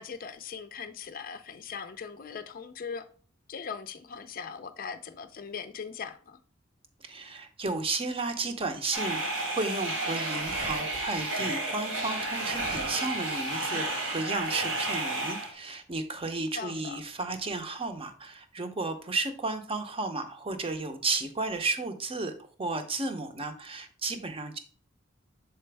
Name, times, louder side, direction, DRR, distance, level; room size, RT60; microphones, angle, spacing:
voice 1, 0.0-3.0 3.5-6.4 16.5-17.0, left 6 dB, 45° left, 0.4 m, -40 dB
voice 2, 7.0-24.6, right 3 dB, 30° right, 0.7 m, -33 dB
sound 1, 8.9-15.5, right 2 dB, 80° right, 1.9 m, -32 dB
6.8 x 4.3 x 3.3 m
head